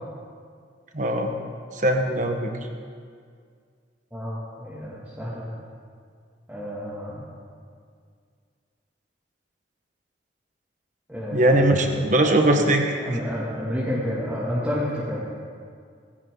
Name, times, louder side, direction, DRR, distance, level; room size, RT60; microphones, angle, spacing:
voice 1, 0.9-1.3 1.8-2.5 11.3-13.0, right 1 dB, 40° right, 4 dB, 1.3 m, -20 dB
voice 2, 4.1-5.5 6.5-7.3 11.1-12.7 13.0-15.2, equal, 10° right, -9 dB, 2.3 m, -30 dB
19.0 x 16.0 x 3.9 m, 2.1 s
head